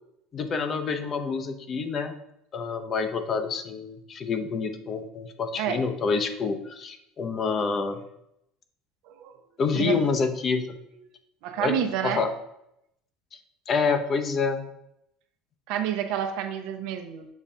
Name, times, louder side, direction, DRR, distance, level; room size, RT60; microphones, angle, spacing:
voice 1, 0.3-2.2 2.5-8.0 9.6-10.7 11.6-11.7 12.0-12.3 13.7-14.7, left 5 dB, 35° left, 8 dB, 0.7 m, -27 dB
voice 2, 9.1-9.4 9.8-10.0 11.4-12.2 15.7-17.3, right 9 dB, 70° right, 6 dB, 0.7 m, -29 dB
7.2 x 2.5 x 5.4 m, 0.80 s
supercardioid pair, 115°, 0 cm